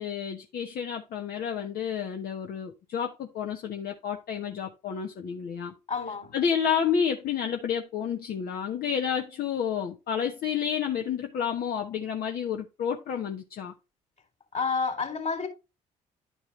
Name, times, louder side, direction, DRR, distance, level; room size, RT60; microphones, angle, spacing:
voice 1, 0.0-5.7 6.3-13.7, left 7 dB, 60° left, 1.2 m, -30 dB
voice 2, 5.9-6.3 14.5-15.5, left 5 dB, 40° left, 3.5 m, -29 dB
11.0 x 4.6 x 3.3 m
hypercardioid pair, 50°, 17 cm